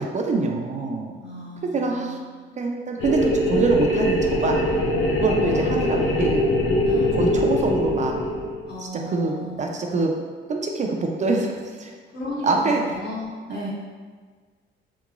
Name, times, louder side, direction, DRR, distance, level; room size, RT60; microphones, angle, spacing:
voice 1, 0.0-1.1 1.7-2.2 2.6-4.8 5.2-6.4 7.1-8.2 8.9-10.1 10.5-11.9 12.4-12.8 13.5-13.7, right 3 dB, 35° right, 1 dB, 0.4 m, -25 dB
voice 2, 1.2-2.1 5.4-6.4 6.8-7.1 8.7-9.6 12.1-13.7, left 1 dB, 55° left, -8 dB, 1.5 m, -35 dB
sound 1, 3.0-8.7, left 1 dB, 80° left, 0.5 m, -22 dB
3.6 x 2.9 x 2.4 m, 1.5 s
cardioid pair, 90°, 20 cm